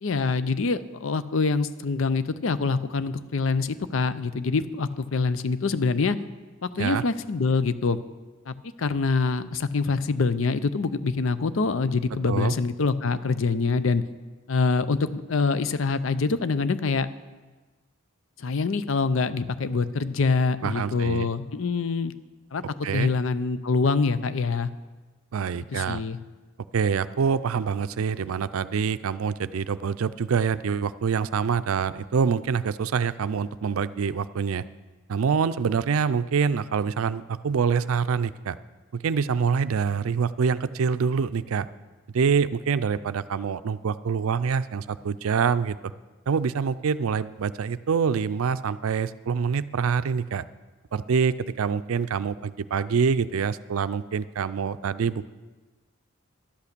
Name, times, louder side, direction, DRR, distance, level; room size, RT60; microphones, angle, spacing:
voice 1, 0.0-6.2 6.6-8.0 8.5-14.0 14.5-17.1 18.4-22.1 22.5-24.7 25.7-26.2, left 4 dB, 70° left, 14 dB, 0.6 m, -25 dB
voice 2, 20.6-21.3 22.8-23.1 25.3-26.0 26.7-34.6 35.1-38.6 38.9-41.7 42.1-45.8 46.3-50.4 50.9-55.3, right 6 dB, 85° right, 15 dB, 0.4 m, -25 dB
11.5 x 8.4 x 6.7 m, 1.3 s
head